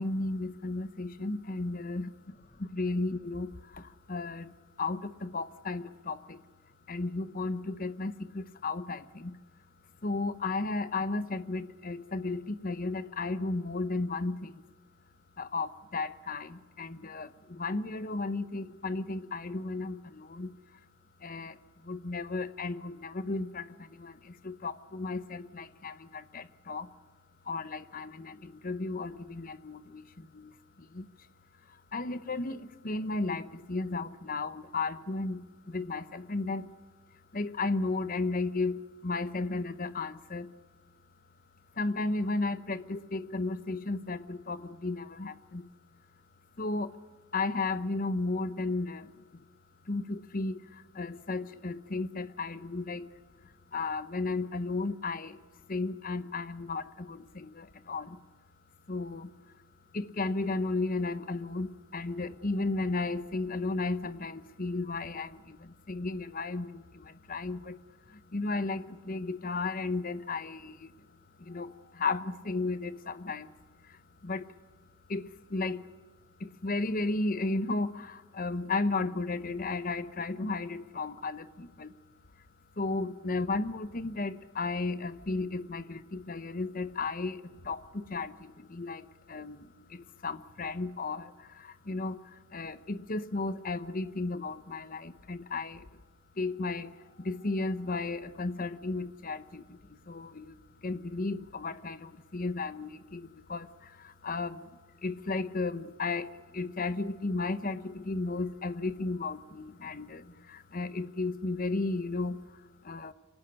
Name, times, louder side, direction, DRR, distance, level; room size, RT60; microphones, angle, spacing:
voice 1, 0.0-2.1 2.6-4.5 4.8-6.4 6.9-9.4 10.0-14.6 15.4-20.5 21.2-26.9 27.4-31.3 31.7-36.7 37.3-40.5 41.7-45.7 46.6-47.0 47.3-49.4 49.9-53.1 53.4-55.4 55.7-58.2 58.9-59.4 59.9-67.8 68.1-71.1 71.4-73.6 73.8-74.5 75.1-75.9 76.4-82.0 82.8-95.9 96.4-104.7 105.0-113.1, left 3 dB, 40° left, 14 dB, 0.9 m, -34 dB
25.0 x 17.5 x 10.0 m, 1.4 s
head